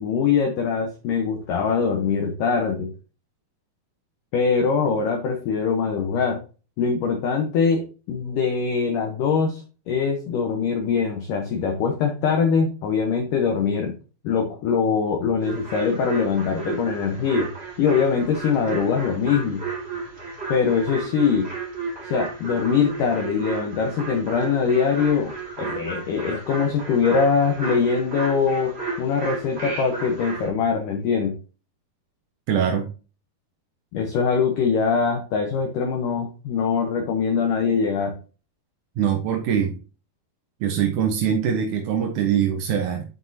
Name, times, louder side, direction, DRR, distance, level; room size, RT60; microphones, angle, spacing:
voice 1, 0.0-2.9 4.3-6.4 6.8-14.0 14.2-17.5 17.8-19.6 20.5-21.5 22.0-25.3 25.6-31.4 33.9-38.2, left 6 dB, 70° left, 3 dB, 2.2 m, -22 dB
sound 1, 15.4-30.5, right 4 dB, 20° right, 1.7 m, -33 dB
voice 2, 32.5-32.9 39.0-39.8 40.6-43.0, right 8 dB, 70° right, 2 dB, 1.9 m, -23 dB
9.6 x 5.3 x 2.8 m, 0.34 s
omnidirectional pair, 4.8 m